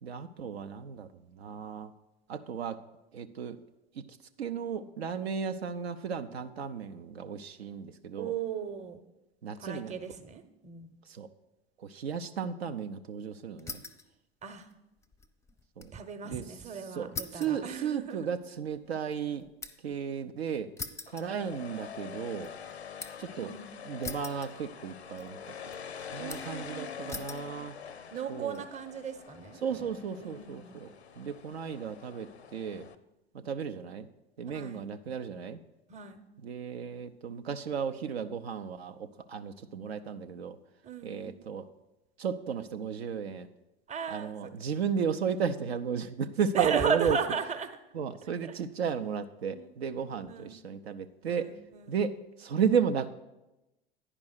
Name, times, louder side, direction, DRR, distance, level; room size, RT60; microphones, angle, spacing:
voice 1, 0.0-1.9 2.3-2.8 3.1-3.6 3.9-4.0 4.4-8.3 9.4-10.0 11.1-11.3 11.8-13.8 15.8-15.9 16.2-19.5 19.8-20.7 21.1-22.5 23.2-23.5 23.8-25.4 26.1-27.8 28.3-28.6 29.6-32.9 33.3-34.1 34.4-35.6 36.4-40.6 41.0-41.7 42.2-43.5 44.1-47.2 47.9-51.5 51.9-52.1 52.4-53.1, right 7 dB, 75° right, 8 dB, 0.5 m, -34 dB
voice 2, 8.2-9.0 9.6-11.0 14.4-14.7 15.9-18.3 23.4-23.7 26.2-27.6 28.1-29.6 30.2-30.8 34.5-34.9 35.9-36.2 40.8-41.3 43.9-44.5 46.5-47.7 48.5-48.6 49.5-50.6 51.3-52.0, right 6 dB, 20° right, 9 dB, 0.8 m, -36 dB
sound 1, 13.6-14.1 14.5-16.0 16.3-16.4 17.1-20.0 20.8-21.9 22.3-23.3 24.0-24.9 25.2-25.8 26.3-26.7 27.1-27.5 28.2-28.6, left 3 dB, 10° left, 0.5 m, -43 dB
sound 2, 21.1-33.0, left 7 dB, 90° left, 0.5 m, -45 dB
9.8 x 5.3 x 6.4 m, 0.96 s
figure-of-eight pair, 75°, 31 cm